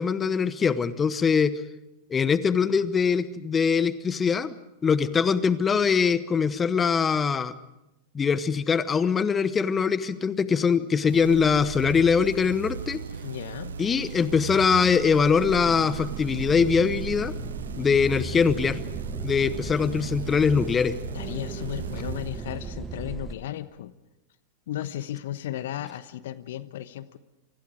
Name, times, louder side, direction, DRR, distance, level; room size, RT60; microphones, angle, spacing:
voice 1, 0.0-1.5 2.1-4.5 4.8-7.5 8.1-13.0 13.8-17.3 17.8-18.8 19.2-21.0, left 6 dB, 20° left, 16 dB, 1.0 m, -22 dB
sound 1, 11.1-23.0, right 7 dB, 65° right, 0.9 m, -37 dB
voice 2, 13.2-13.8 21.1-23.9 24.7-27.2, left 12 dB, 55° left, 16 dB, 1.0 m, -35 dB
sound 2, 15.4-23.3, right 3 dB, 15° right, 1.7 m, -37 dB
29.0 x 25.0 x 5.0 m, 0.93 s
figure-of-eight pair, 90°, 0 cm